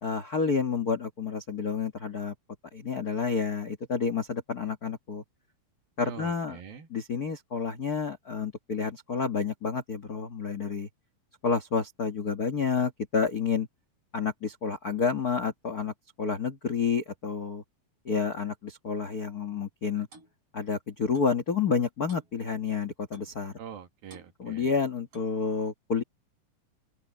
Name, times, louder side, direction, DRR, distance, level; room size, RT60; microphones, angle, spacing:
voice 1, 0.0-2.3 2.7-5.2 6.0-6.6 6.9-10.9 11.4-13.7 14.1-17.6 18.0-20.1 20.5-23.5 24.4-26.0, left 5 dB, 65° left, 0.9 m, -29 dB
voice 2, 6.0-6.9 23.6-24.7, right 7 dB, 80° right, 3.9 m, -44 dB
Clock, 20.1-20.3 21.1-21.4 22.1-22.3 23.1-23.4 24.1-24.3 25.1-25.4, right 3 dB, 40° right, 5.1 m, -52 dB
open air
omnidirectional pair, 4.1 m